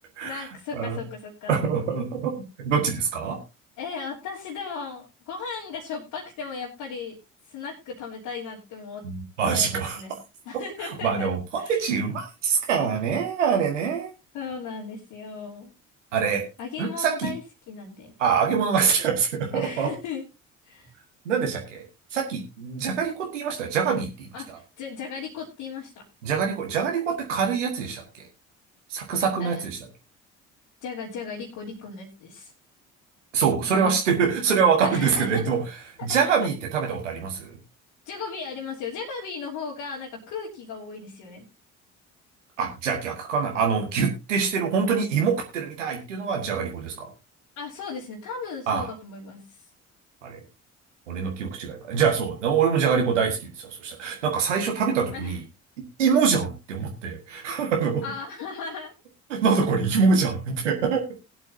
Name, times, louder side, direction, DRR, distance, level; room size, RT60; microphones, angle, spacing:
voice 1, 0.2-1.6 3.8-7.2 7.5-9.1 9.5-10.2 10.4-11.3 11.6-11.9 14.3-15.7 16.6-17.4 17.7-18.1 19.5-20.3 20.6-20.9 24.3-26.1 29.1-29.6 30.8-32.5 33.6-34.0 34.8-35.4 36.0-36.5 38.0-41.5 47.6-49.7 55.1-55.4 58.0-58.9, left 5 dB, 55° left, -5 dB, 3.1 m, -36 dB
voice 2, 1.5-2.3 2.6-3.4 9.0-10.0 10.8-11.4 11.7-14.1 16.1-16.4 16.8-17.3 18.2-19.9 21.2-21.8 22.1-24.3 26.2-28.3 28.9-29.8 33.3-35.6 36.0-37.6 42.6-47.1 48.7-48.9 50.2-50.4 51.1-55.4 56.0-58.0 59.3-61.2, right 6 dB, 75° right, 1 dB, 1.8 m, -24 dB
20.0 x 8.8 x 2.7 m, 0.27 s
figure-of-eight pair, 50°, 37 cm